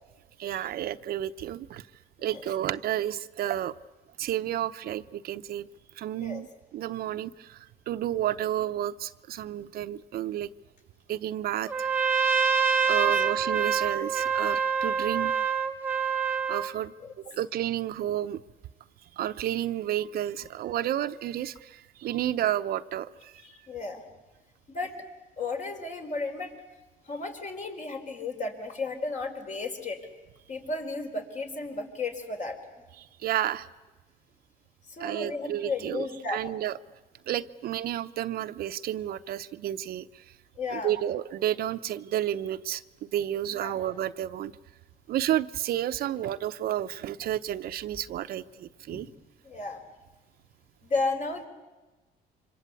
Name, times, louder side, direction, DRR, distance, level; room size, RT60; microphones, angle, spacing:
voice 1, 0.4-1.8 2.2-3.7 4.2-5.7 6.0-7.6 7.9-10.5 11.1-11.9 12.9-15.3 16.5-16.9 17.3-18.4 19.1-23.3 33.0-33.7 35.0-36.7 37.3-40.1 40.7-44.5 45.1-49.1, right 12 dB, 65° right, 11 dB, 0.8 m, -31 dB
Trumpet, 11.7-16.7, right 6 dB, 10° right, 1.3 m, -26 dB
voice 2, 12.8-13.2 17.0-17.1 23.4-24.0 24.7-24.9 25.4-26.5 27.1-30.0 30.5-32.6 34.9-36.4 40.6-40.9 43.5-43.8 48.9-49.1 49.4-49.8 50.8-51.5, left 3 dB, 45° left, 4 dB, 4.7 m, -34 dB
26.5 x 25.5 x 8.4 m, 1.2 s
cardioid pair, 110°, 17 cm